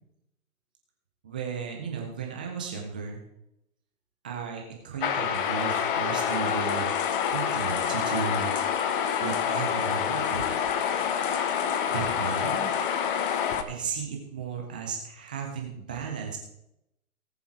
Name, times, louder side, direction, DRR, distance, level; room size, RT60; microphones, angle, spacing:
voice 1, 1.2-3.2 4.2-6.9 7.3-8.6 9.2-10.5 11.9-12.7 13.7-16.4, right 6 dB, 5° right, 0 dB, 0.4 m, -35 dB
sound 1, 5.0-13.6, left 8 dB, 35° left, 1.1 m, -27 dB
18.0 x 7.0 x 4.5 m, 0.82 s
hypercardioid pair, 130°, 43 cm